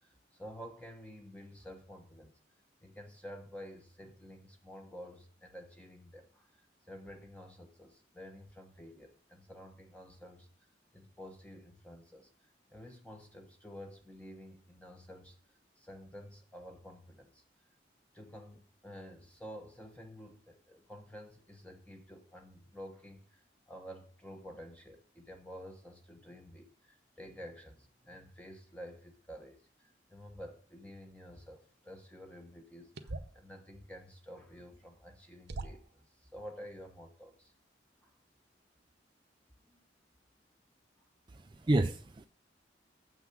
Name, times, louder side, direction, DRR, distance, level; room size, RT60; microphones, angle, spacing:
voice 1, 0.0-2.3 2.8-6.5 6.9-10.5 10.9-12.3 12.7-17.4 18.1-37.5 38.0-38.1 39.7-39.8, equal, 10° left, 3 dB, 1.0 m, -50 dB
sound 1, 32.9-33.4 34.8-34.9 35.5-36.0, right 2 dB, 70° right, 0.7 m, -42 dB
voice 2, 41.3-42.3, right 2 dB, 25° right, 7 dB, 0.4 m, -30 dB
7.6 x 6.2 x 5.9 m, 0.43 s
head